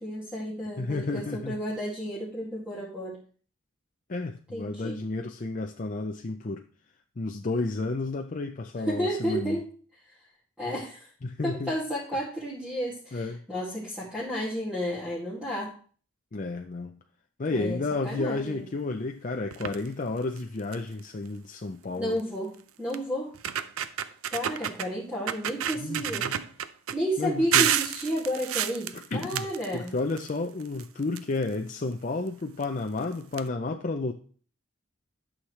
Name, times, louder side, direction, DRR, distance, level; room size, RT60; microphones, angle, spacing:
voice 1, 0.0-3.2 4.5-5.0 8.8-9.6 10.6-11.1 11.4-15.7 17.5-18.7 21.9-22.5 22.8-23.3 24.3-26.3 26.9-29.9, equal, 5° right, -8 dB, 2.2 m, -32 dB
voice 2, 0.8-1.6 4.1-6.6 7.2-9.6 11.2-11.7 13.1-13.4 16.3-17.0 17.4-22.2 25.8-26.4 27.2-27.7 28.9-29.5 29.7-34.1, left 3 dB, 40° left, 3 dB, 0.5 m, -31 dB
sound 1, 19.5-19.9 20.4-20.5 20.7-21.0 22.2-22.3 22.9-23.0 23.3-24.9 25.3-27.0 27.5-30.3 30.6-31.7 32.6-32.7 33.0-33.1 33.3-33.4, right 10 dB, 85° right, 0.5 m, -29 dB
11.5 x 6.4 x 3.2 m, 0.43 s
head